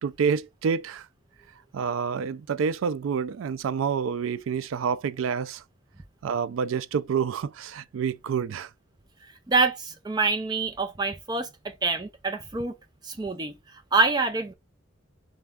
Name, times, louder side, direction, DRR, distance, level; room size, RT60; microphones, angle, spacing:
voice 1, 0.0-1.1 1.7-5.6 6.2-8.7, right 6 dB, 85° right, 0.3 m, -28 dB
voice 2, 9.5-12.7 13.0-13.5 13.9-14.5, right 3 dB, 20° right, 0.5 m, -26 dB
3.4 x 3.3 x 3.5 m
head